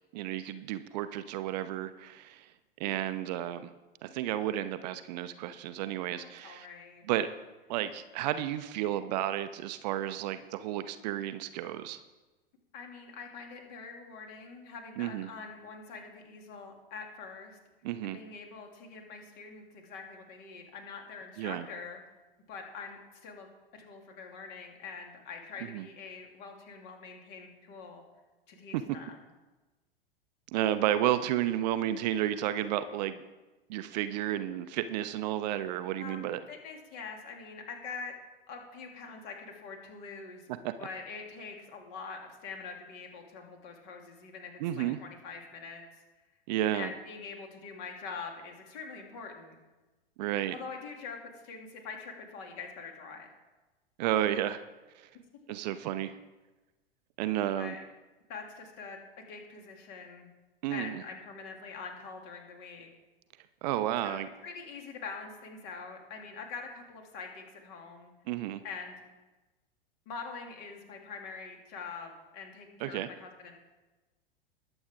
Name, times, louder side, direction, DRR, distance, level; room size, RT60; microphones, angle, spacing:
voice 1, 0.1-2.5 2.8-3.7 4.0-6.7 7.1-7.3 7.7-12.0 15.0-15.3 17.8-18.2 21.4-21.7 25.7-25.9 28.7-28.8 30.5-33.2 33.7-36.4 40.6-40.7 44.6-45.0 46.5-46.9 50.2-50.5 54.0-54.6 55.0-55.1 55.5-56.2 57.2-57.8 60.6-61.0 63.6-64.3 68.3-68.6 72.8-73.1, right 12 dB, 45° right, 12 dB, 0.7 m, -32 dB
voice 2, 6.1-7.0 12.7-17.6 18.0-22.0 22.5-28.0 28.5-29.2 36.0-38.1 38.5-40.5 40.8-46.0 46.7-49.5 50.5-53.3 57.5-57.8 58.3-60.3 60.7-62.9 64.0-68.1 68.6-68.9 70.1-73.6, left 5 dB, 45° left, 2 dB, 2.9 m, -44 dB
21.0 x 8.0 x 3.7 m, 1.1 s
figure-of-eight pair, 95°, 30 cm